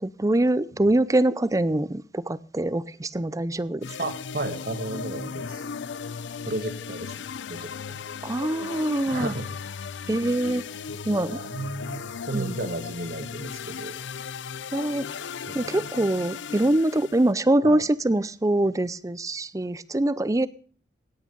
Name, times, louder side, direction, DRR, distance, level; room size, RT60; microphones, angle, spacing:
voice 1, 0.0-4.0 8.2-9.3 10.1-10.7 11.1-11.4 12.3-12.6 14.7-15.1 15.5-20.5, right 1 dB, 20° right, 18 dB, 0.5 m, -24 dB
sound 1, 3.8-17.3, left 6 dB, 85° left, 0.5 m, -36 dB
voice 2, 4.0-5.6 6.4-7.1 7.5-8.0 9.1-9.5 11.1-13.9 15.5-15.8 17.6-17.8, right 2 dB, 55° right, 9 dB, 1.7 m, -33 dB
17.5 x 8.8 x 5.3 m, 0.44 s
head